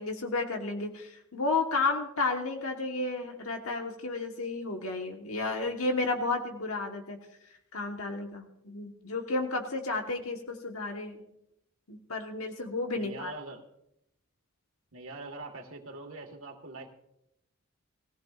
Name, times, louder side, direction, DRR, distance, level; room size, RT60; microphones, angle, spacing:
voice 1, 0.0-7.2 7.7-11.2 11.9-13.3, left 3 dB, 80° left, 3 dB, 1.4 m, -32 dB
voice 2, 12.9-13.6 14.9-16.9, right 2 dB, 75° right, 2 dB, 1.6 m, -43 dB
21.0 x 15.5 x 2.5 m, 0.80 s
head